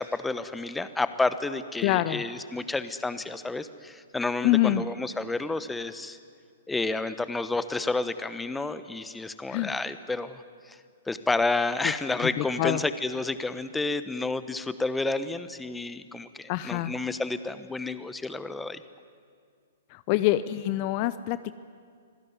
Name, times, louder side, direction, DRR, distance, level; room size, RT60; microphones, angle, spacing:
voice 1, 0.0-6.2 6.7-10.8 11.0-18.8, left 3 dB, 5° left, 12 dB, 1.0 m, -30 dB
voice 2, 1.8-2.2 4.4-4.8 9.5-9.7 11.8-11.9 12.4-12.8 16.5-16.9 19.9-21.5, left 15 dB, 40° left, 14 dB, 0.7 m, -25 dB
25.5 x 17.0 x 9.6 m, 2.1 s
hypercardioid pair, 120°, 0 cm